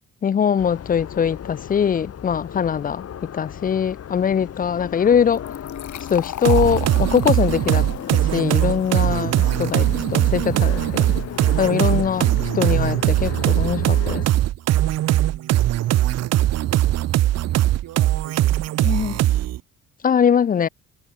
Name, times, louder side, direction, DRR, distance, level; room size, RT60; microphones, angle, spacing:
voice 1, 0.2-5.5 6.1-11.1 11.6-12.3 12.5-14.2 18.8-19.2 20.0-20.7, left 7 dB, 30° left, 0.4 m, -22 dB
sound 1, 0.6-14.3, left 9 dB, 55° left, 1.7 m, -35 dB
Fill (with liquid), 5.3-12.7, left 12 dB, 70° left, 2.6 m, -39 dB
sound 2, 6.4-19.6, right 14 dB, 60° right, 0.5 m, -20 dB
voice 2, 14.9-15.9 16.2-19.0, right 14 dB, 85° right, 6.0 m, -44 dB
cardioid pair, 90°, 30 cm